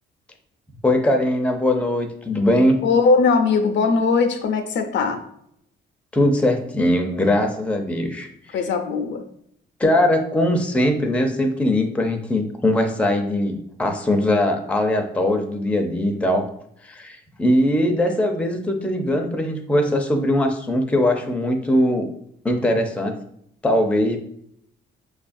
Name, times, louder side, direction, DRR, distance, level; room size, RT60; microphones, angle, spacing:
voice 1, 0.8-2.8 6.1-8.3 9.8-16.5 16.8-22.1 22.4-23.2 23.6-24.2, left 1 dB, 5° left, 4 dB, 0.5 m, -20 dB
voice 2, 2.8-5.2 8.5-9.2, left 4 dB, 65° left, 6 dB, 0.5 m, -19 dB
5.1 x 2.4 x 2.5 m, 0.71 s
cardioid pair, 90°, 20 cm